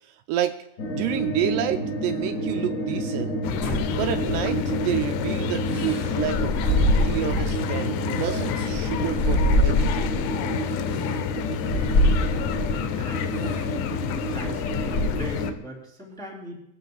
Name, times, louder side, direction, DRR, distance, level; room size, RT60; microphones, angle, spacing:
sound 1, 0.8-15.5, right 1 dB, 70° left, 1.1 m, -30 dB
voice 1, 0.9-3.4 3.9-10.2, right 11 dB, 85° right, 8 dB, 2.6 m, -29 dB
sound 2, 3.4-15.5, left 11 dB, 85° left, 2.2 m, -30 dB
sound 3, 3.6-4.8 5.7-7.6 8.0-10.3 10.9-11.0 11.6-12.8 13.3-13.7 14.1-15.4, left 1 dB, 40° left, 3.6 m, -25 dB
voice 2, 12.7-13.6 14.0-16.6, equal, ahead, -3 dB, 2.1 m, -39 dB
21.0 x 12.0 x 2.4 m, 0.79 s
omnidirectional pair, 5.0 m